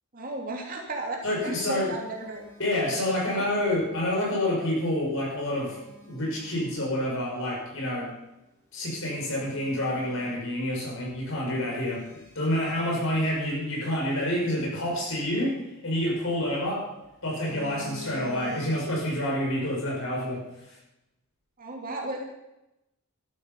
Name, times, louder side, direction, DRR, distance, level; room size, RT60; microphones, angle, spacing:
voice 1, 0.1-2.4 2.9-3.4 21.6-22.2, right 2 dB, 40° right, 0 dB, 2.7 m, -34 dB
voice 2, 1.2-1.9 2.6-5.8 6.0-8.1 8.7-12.0 12.3-15.6 15.8-16.9 17.2-20.4, left 1 dB, 60° left, -2 dB, 6.2 m, -28 dB
Telephone, 1.3-3.9 5.1-7.0 7.7-7.8 8.4-8.5 8.8-10.9 11.1-11.3 11.8-14.1 15.7-16.7 17.0-19.2 19.5-19.7, equal, 10° left, 5.1 m, -48 dB
13.5 x 12.5 x 5.5 m, 0.91 s
head